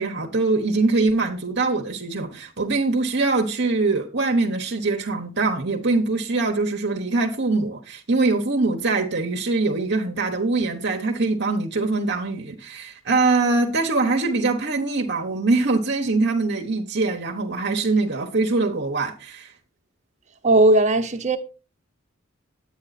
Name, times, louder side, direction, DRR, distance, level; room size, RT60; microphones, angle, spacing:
voice 1, 0.0-19.5, right 3 dB, 55° right, 1.1 m, -23 dB
voice 2, 20.4-21.4, right 2 dB, 35° right, 1.2 m, -17 dB
10.5 x 8.7 x 4.1 m
head